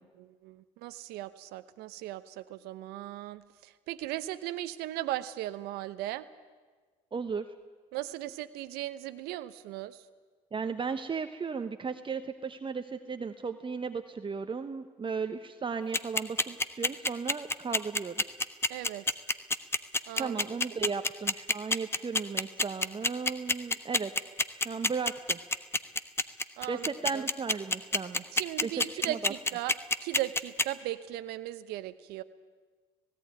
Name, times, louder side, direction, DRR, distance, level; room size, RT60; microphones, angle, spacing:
voice 1, 0.2-6.3 7.9-10.0 18.7-19.0 20.1-20.4 20.8-20.9 26.6-27.2 28.3-29.8 30.0-32.2, right 15 dB, 75° right, 13 dB, 0.9 m, -37 dB
voice 2, 7.1-7.4 10.5-18.1 20.1-25.4 26.7-28.2 28.6-29.3, right 5 dB, 30° right, 8 dB, 1.1 m, -35 dB
sound 1, 15.9-30.6, left 2 dB, 15° left, 1.2 m, -26 dB
18.0 x 16.5 x 9.4 m, 1.4 s
hypercardioid pair, 65°, 17 cm